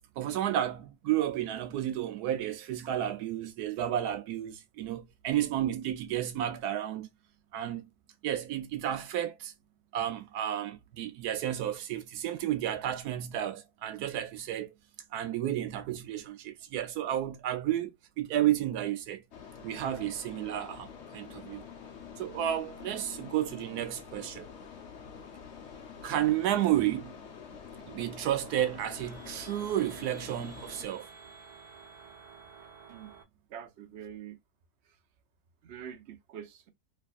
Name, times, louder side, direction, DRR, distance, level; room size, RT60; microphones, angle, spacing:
voice 1, 0.2-7.1 7.5-7.8 8.2-9.5 9.9-14.7 15.1-19.2 19.6-21.6 22.2-24.5 26.0-27.2 27.9-31.1, right 12 dB, 90° right, 1.2 m, -32 dB
sound 1, 19.3-30.8, left 6 dB, 55° left, 1.0 m, -47 dB
sound 2, 27.6-33.2, right 4 dB, 25° right, 0.8 m, -51 dB
voice 2, 33.5-34.4 34.8-35.0 35.6-36.7, right 9 dB, 55° right, 0.9 m, -45 dB
3.3 x 3.2 x 2.4 m
omnidirectional pair, 1.6 m